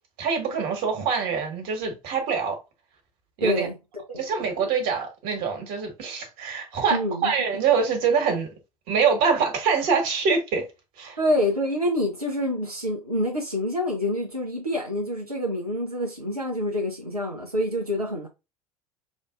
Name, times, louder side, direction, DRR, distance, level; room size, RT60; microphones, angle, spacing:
voice 1, 0.2-2.6 3.4-3.7 4.2-8.5 8.9-10.6 11.0-11.2, right 5 dB, 50° right, 1.6 m, -24 dB
voice 2, 3.4-4.2 6.9-7.3 11.2-18.3, left 1 dB, 90° right, 0.8 m, -27 dB
6.1 x 2.7 x 2.4 m
figure-of-eight pair, 70°, 19 cm